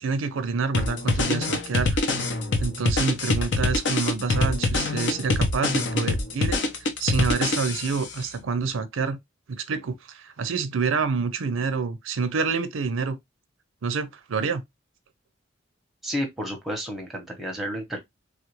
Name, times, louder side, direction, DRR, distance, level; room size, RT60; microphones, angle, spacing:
voice 1, 0.0-2.0 2.6-6.6 7.0-9.2 9.5-13.2 13.8-14.6, right 5 dB, 85° right, 0.5 m, -27 dB
sound 1, 0.7-8.1, left 2 dB, 65° left, 0.7 m, -25 dB
voice 2, 16.0-18.0, equal, ahead, 0.8 m, -31 dB
3.4 x 2.4 x 3.0 m
head